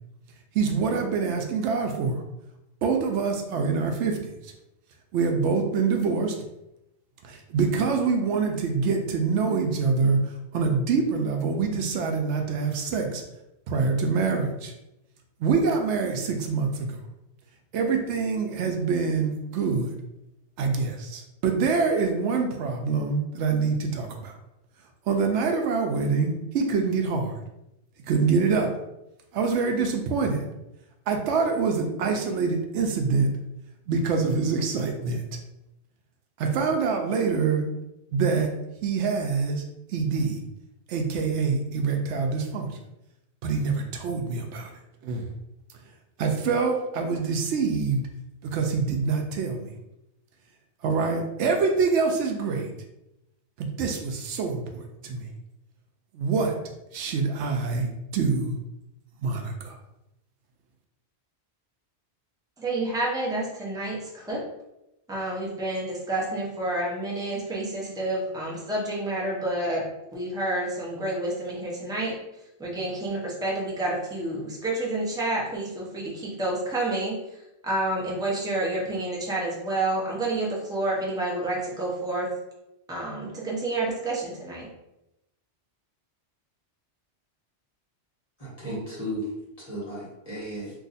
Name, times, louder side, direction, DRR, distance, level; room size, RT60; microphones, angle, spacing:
voice 1, 0.5-2.2 2.8-4.5 5.1-6.4 7.2-10.2 10.5-13.2 13.7-14.7 15.4-17.0 17.7-19.9 20.6-24.3 25.1-27.3 28.1-28.7 29.3-30.5 31.1-33.3 33.9-35.4 36.4-37.7 38.1-38.5 38.8-39.6 39.9-40.4 40.9-42.7 43.4-44.7 45.0-45.2 46.2-48.0 48.4-49.7 50.8-52.7 53.6-55.3 56.1-56.5 56.9-58.5 59.2-59.8, right 5 dB, 80° right, 4 dB, 0.9 m, -25 dB
voice 2, 62.6-64.4 65.1-69.9 70.1-72.2 72.6-77.2 77.6-82.3 82.9-84.7, right 2 dB, 5° right, -4 dB, 0.6 m, -29 dB
voice 3, 88.4-89.3 89.6-90.7, equal, 35° left, -6 dB, 1.2 m, -34 dB
2.7 x 2.5 x 4.0 m, 0.89 s
omnidirectional pair, 1.2 m